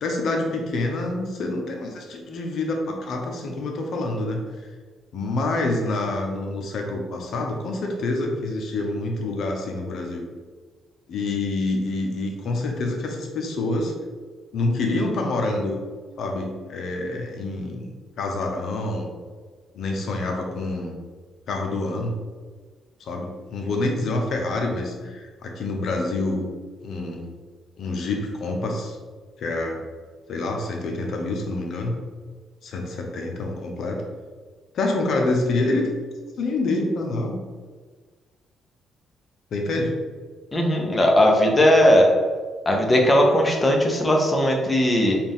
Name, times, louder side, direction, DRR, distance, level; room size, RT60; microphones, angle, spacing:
voice 1, 0.0-4.4 5.1-10.3 11.1-13.9 14.5-15.8 16.2-17.9 18.2-19.1 19.7-21.0 21.5-22.1 23.0-26.5 26.8-27.3 27.8-29.0 29.4-29.8 30.3-32.0 32.6-34.0 34.7-35.9 36.4-37.4 39.5-39.9, left 2 dB, 65° left, 2 dB, 0.7 m, -27 dB
voice 2, 40.5-42.1 42.7-45.2, equal, 25° left, 0 dB, 0.8 m, -18 dB
4.2 x 2.5 x 3.6 m, 1.5 s
cardioid pair, 90°, 0 cm